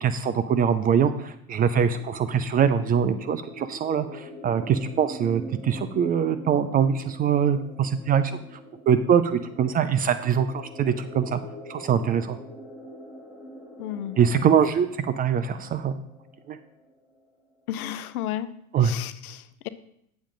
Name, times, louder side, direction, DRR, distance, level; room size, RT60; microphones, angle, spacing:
voice 1, 0.0-8.3 8.9-11.4 11.7-12.4 14.2-15.9 16.5-16.6 18.7-18.9, right 7 dB, 20° right, 12 dB, 0.4 m, -23 dB
sound 1, 1.6-17.2, equal, 5° right, 2.3 m, -43 dB
voice 2, 13.8-14.2 17.7-18.5 18.8-19.7, left 11 dB, 75° left, 12 dB, 0.7 m, -33 dB
8.5 x 7.2 x 3.8 m, 0.72 s
hypercardioid pair, 105°, 43 cm